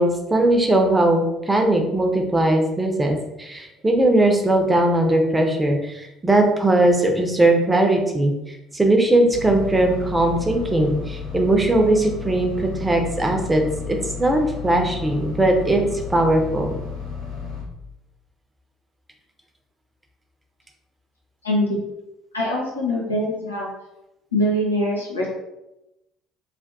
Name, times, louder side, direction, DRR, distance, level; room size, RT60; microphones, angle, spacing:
voice 1, 0.0-8.3 8.7-15.8 16.1-16.7, right 1 dB, 15° right, 3 dB, 0.7 m, -19 dB
sound 1, 9.3-17.6, left 6 dB, 65° left, 1.2 m, -33 dB
voice 2, 21.4-21.8 22.3-23.7 24.3-25.3, left 1 dB, 85° left, -4 dB, 0.6 m, -23 dB
3.4 x 2.6 x 2.5 m, 0.91 s
figure-of-eight pair, 55°, 0 cm